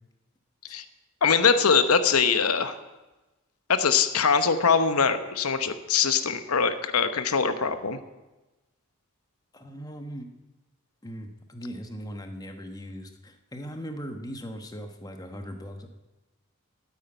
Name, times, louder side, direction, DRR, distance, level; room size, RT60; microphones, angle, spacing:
voice 1, 1.2-2.7 3.7-8.0, left 6 dB, 90° left, 10 dB, 0.9 m, -22 dB
voice 2, 9.5-10.3 11.0-15.9, equal, 15° left, 5 dB, 1.1 m, -39 dB
9.4 x 8.8 x 8.9 m, 1.1 s
head